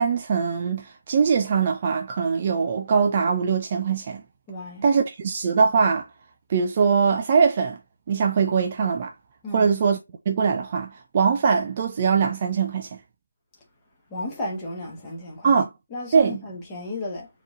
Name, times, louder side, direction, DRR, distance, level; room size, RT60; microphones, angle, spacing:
voice 1, 0.0-4.2 4.8-6.1 6.5-7.8 8.1-9.1 9.5-10.0 10.3-13.0 15.4-15.7 16.1-16.4, right 5 dB, 25° right, 0.4 m, -22 dB
voice 2, 4.5-4.9 9.4-9.7 14.1-15.6 15.9-17.3, left 1 dB, 15° left, 1.2 m, -34 dB
4.5 x 3.0 x 3.6 m
figure-of-eight pair, 155°, 0 cm